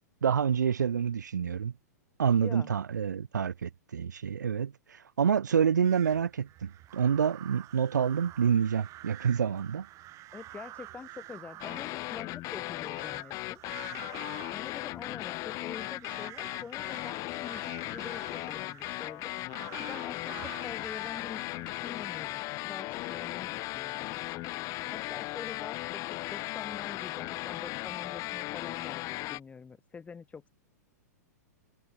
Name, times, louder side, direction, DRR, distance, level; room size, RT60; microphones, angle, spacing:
voice 1, 0.2-1.7 2.2-9.9, right 7 dB, 85° right, 0.4 m, -27 dB
sound 1, 5.8-22.1, right 16 dB, 35° right, 3.2 m, -50 dB
voice 2, 10.3-13.6 14.5-19.3 19.8-21.5 21.8-24.2 24.9-26.0 26.3-29.0 29.3-30.5, left 5 dB, 15° left, 2.3 m, -46 dB
sound 2, 11.6-29.4, left 20 dB, 35° left, 1.2 m, -37 dB
hypercardioid pair, 110°, 9 cm